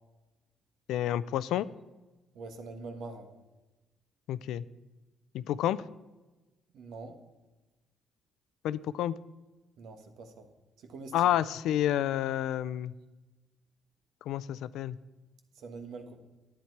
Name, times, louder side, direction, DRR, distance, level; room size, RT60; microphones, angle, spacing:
voice 1, 0.9-1.7 4.3-4.6 5.3-5.8 8.6-9.1 11.1-12.9 14.3-15.0, left 12 dB, 85° left, 17 dB, 0.4 m, -29 dB
voice 2, 2.3-3.3 6.7-7.2 9.8-10.5 10.8-11.4 15.5-16.2, right 3 dB, 80° right, 6 dB, 1.3 m, -44 dB
10.5 x 8.8 x 4.6 m, 1.1 s
cardioid pair, 90°, 0 cm